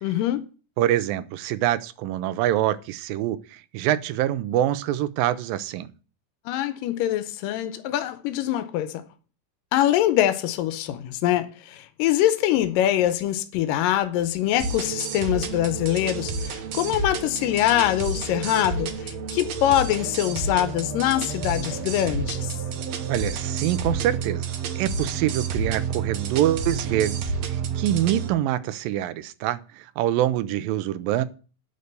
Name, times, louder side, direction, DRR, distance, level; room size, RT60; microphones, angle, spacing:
voice 1, 0.0-0.4 6.5-9.0 9.7-22.6, left 13 dB, 80° left, 2.4 m, -24 dB
voice 2, 0.8-5.9 23.1-24.5 24.8-27.2 27.5-31.3, right 12 dB, 90° right, 2.5 m, -25 dB
sound 1, 14.6-28.3, right 5 dB, 65° right, 2.0 m, -30 dB
9.6 x 6.8 x 6.7 m
omnidirectional pair, 3.9 m